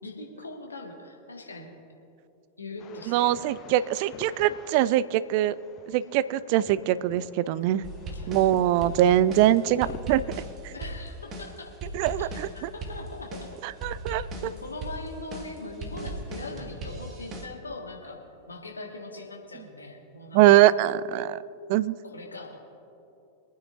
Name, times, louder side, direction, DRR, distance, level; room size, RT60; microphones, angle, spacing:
voice 1, 0.0-1.7 2.6-3.4 8.1-9.5 10.7-11.7 12.2-13.6 14.4-18.2 18.5-20.4 22.0-22.6, left 2 dB, 75° left, 1 dB, 1.6 m, -41 dB
sound 1, 2.8-10.0, left 7 dB, 30° left, 0.7 m, -47 dB
voice 2, 3.1-5.6 5.9-7.8 8.3-10.2 10.6-10.7 11.9-12.7 13.6-14.3 20.3-21.4 21.7-21.9, right 13 dB, 45° right, 18 dB, 0.3 m, -22 dB
sound 2, 7.8-17.5, right 1 dB, 30° right, 1.5 m, -38 dB
24.5 x 9.3 x 2.6 m, 2.7 s
figure-of-eight pair, 90°, 0 cm